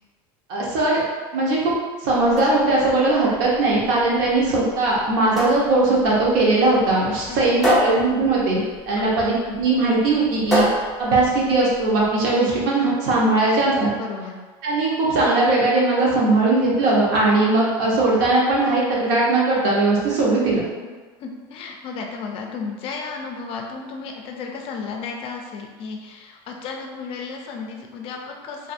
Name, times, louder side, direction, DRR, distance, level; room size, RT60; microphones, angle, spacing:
voice 1, 0.5-1.0 1.3-1.7 2.0-10.7 11.0-13.9 14.6-20.6, right 2 dB, 80° right, -5 dB, 0.8 m, -19 dB
sound 1, 2.1-12.1, left 1 dB, ahead, 0.9 m, -28 dB
voice 2, 14.0-14.4 21.2-28.7, left 5 dB, 50° left, 2 dB, 0.4 m, -33 dB
2.5 x 2.5 x 2.4 m, 1.4 s
supercardioid pair, 130°, 13 cm